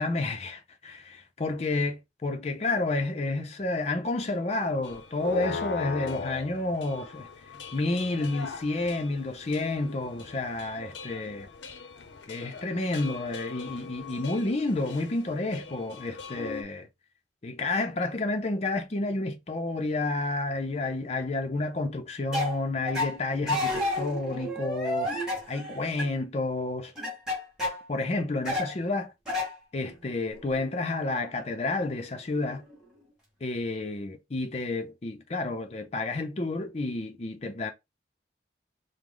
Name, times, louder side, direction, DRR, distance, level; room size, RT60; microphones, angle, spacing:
voice 1, 0.0-7.3 7.7-11.5 12.3-16.9 17.4-26.9 27.9-29.1 29.7-32.6 33.4-37.7, left 2 dB, 35° left, 0.5 m, -30 dB
sound 1, 4.8-16.6, left 4 dB, 80° left, 0.6 m, -40 dB
sound 2, 22.3-22.6 22.9-23.2 23.5-26.1 27.0-27.8 28.5-28.7 29.3-29.5 29.8-30.8 31.6-31.7 32.0-32.8, left 1 dB, 5° right, 1.9 m, -31 dB
4.9 x 2.1 x 3.7 m
head